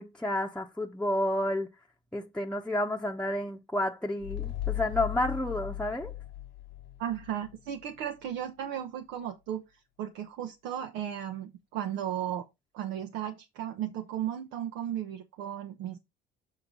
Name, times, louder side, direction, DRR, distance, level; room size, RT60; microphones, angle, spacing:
voice 1, 0.0-1.7 2.1-6.1, left 1 dB, 5° left, 0.9 m, -30 dB
sound 1, 4.2-7.6, left 13 dB, 80° left, 1.0 m, -37 dB
voice 2, 7.0-9.6 10.0-12.5 12.7-16.0, right 10 dB, 85° right, 1.0 m, -35 dB
6.6 x 4.4 x 5.3 m
cardioid pair, 95°, 19 cm